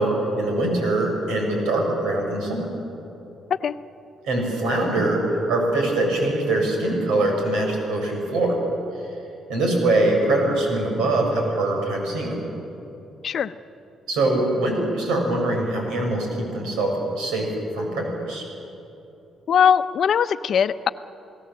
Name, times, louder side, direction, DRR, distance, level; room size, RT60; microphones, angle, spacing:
voice 1, 0.0-2.7 4.2-8.6 9.5-12.4 14.1-17.5 17.7-18.4, right 2 dB, 90° right, 1 dB, 6.7 m, -23 dB
voice 2, 19.5-20.9, left 8 dB, 60° left, 12 dB, 0.7 m, -20 dB
29.0 x 17.5 x 7.7 m, 2.9 s
cardioid pair, 90°, 0 cm